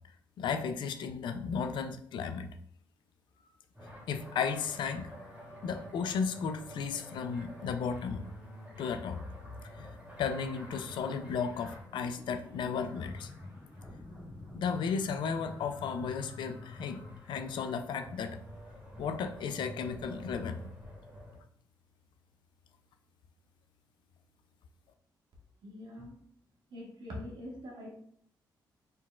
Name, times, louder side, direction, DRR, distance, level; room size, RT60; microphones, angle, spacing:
voice 1, 0.4-2.5 4.1-5.1 5.6-8.2 8.8-9.2 9.8-9.9 10.2-13.3 14.5-17.0 17.3-18.4 19.0-20.6, left 6 dB, 80° left, 8 dB, 0.4 m, -34 dB
sound 1, 3.7-21.4, left 1 dB, 20° right, 1.8 m, -49 dB
voice 2, 25.6-26.2 26.7-27.9, left 1 dB, 75° right, -2 dB, 1.4 m, -43 dB
4.3 x 3.9 x 2.4 m, 0.64 s
cardioid pair, 115°, 8 cm